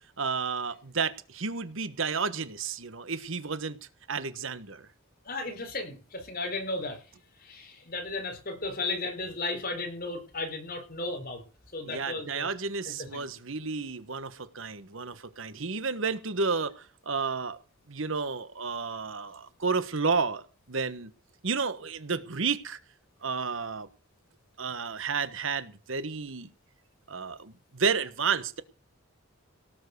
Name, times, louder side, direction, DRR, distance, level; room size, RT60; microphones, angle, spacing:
voice 1, 0.2-3.8 4.1-4.9 11.9-17.6 17.9-21.1 21.4-22.8 23.2-23.9 24.6-26.5 27.1-28.6, right 5 dB, 65° right, 1.3 m, -31 dB
voice 2, 5.3-7.0 7.4-11.4 11.7-12.5 12.8-13.3, left 2 dB, 45° left, 4.7 m, -35 dB
18.0 x 7.5 x 6.7 m
head